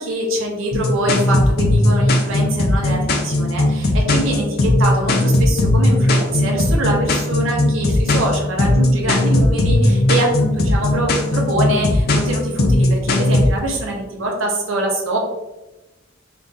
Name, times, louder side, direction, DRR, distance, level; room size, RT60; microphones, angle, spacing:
voice 1, 0.0-15.2, right 1 dB, 75° right, -1 dB, 0.8 m, -24 dB
sound 1, 0.7-13.5, left 1 dB, 50° left, 0.5 m, -17 dB
3.0 x 2.5 x 3.5 m, 1.0 s
head